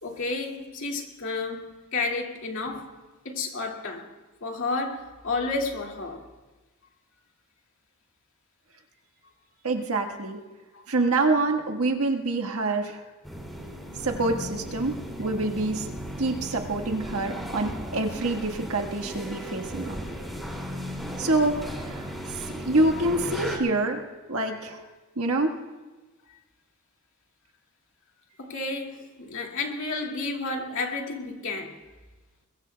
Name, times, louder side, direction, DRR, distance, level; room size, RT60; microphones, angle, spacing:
voice 1, 0.0-2.9 3.2-4.1 4.4-6.3 10.7-10.8 12.8-12.9 28.4-31.8, left 3 dB, 60° left, 2.2 m, -31 dB
voice 2, 9.6-10.4 10.9-13.0 14.0-15.9 16.2-20.0 21.2-22.1 22.6-24.0 24.3-24.8 25.2-25.5, right 2 dB, 75° right, 1.5 m, -26 dB
sound 1, 13.2-23.6, equal, ahead, 2.5 m, -36 dB
22.5 x 22.0 x 2.3 m
head